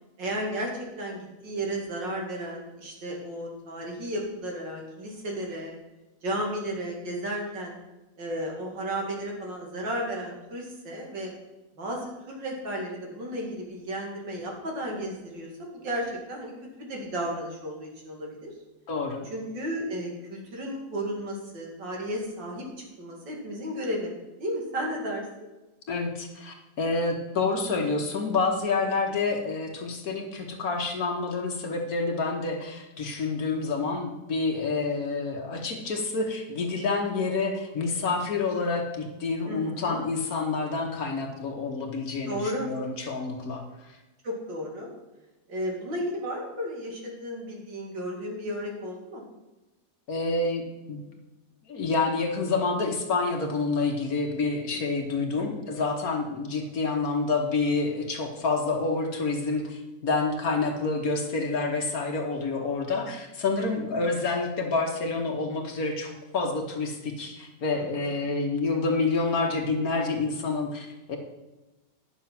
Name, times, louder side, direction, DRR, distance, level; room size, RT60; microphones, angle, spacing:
voice 1, 0.2-5.8 6.2-7.8 8.2-11.3 11.8-18.5 19.3-24.1 24.4-25.3 39.4-40.0 42.3-42.7 44.2-44.9 45.5-49.2 54.7-54.8 63.6-63.7 67.7-68.0, equal, 75° right, -1 dB, 2.8 m, -33 dB
voice 2, 18.9-19.3 25.9-43.6 50.1-50.6 50.9-51.0 51.7-71.2, left 3 dB, 55° left, 3 dB, 1.6 m, -28 dB
10.0 x 6.7 x 5.9 m, 1.1 s
omnidirectional pair, 2.0 m